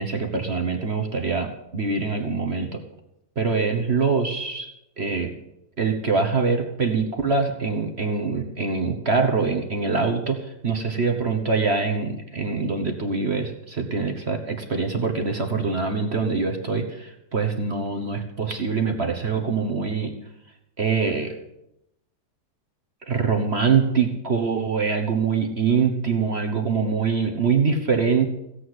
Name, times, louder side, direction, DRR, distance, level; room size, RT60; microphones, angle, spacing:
voice 1, 0.0-2.8 3.4-4.7 5.0-5.3 5.8-20.1 20.8-21.4 23.1-28.3, right 5 dB, 40° right, 4 dB, 1.3 m, -24 dB
16.0 x 8.3 x 8.0 m, 0.85 s
omnidirectional pair, 1.9 m